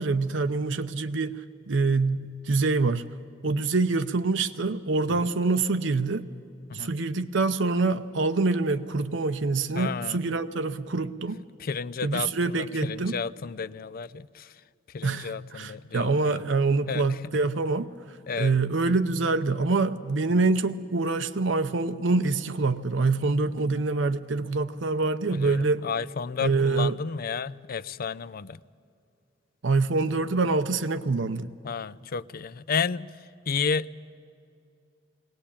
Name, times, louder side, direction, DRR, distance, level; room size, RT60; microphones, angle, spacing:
voice 1, 0.0-1.4 1.7-3.1 3.4-6.3 6.7-11.4 12.0-13.1 15.0-25.8 26.4-27.0 29.6-31.5, right 3 dB, 75° right, 9 dB, 0.7 m, -25 dB
voice 2, 9.8-10.2 11.6-14.5 14.9-16.4 16.9-17.3 18.3-18.5 25.3-28.6 31.6-33.1 33.5-33.9, left 5 dB, 50° left, 17 dB, 0.5 m, -32 dB
21.5 x 18.0 x 8.6 m, 2.5 s
head